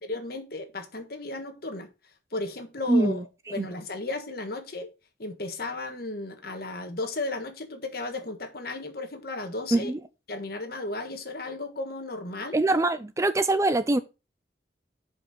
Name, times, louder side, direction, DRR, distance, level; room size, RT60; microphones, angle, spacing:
voice 1, 0.1-1.9 2.3-3.2 3.5-4.9 5.2-9.9 10.3-12.6, left 2 dB, 55° left, 1.5 m, -34 dB
voice 2, 2.9-3.2 3.6-3.7 9.7-10.0 12.5-14.0, right 2 dB, 15° right, 0.4 m, -23 dB
7.2 x 5.3 x 5.1 m
head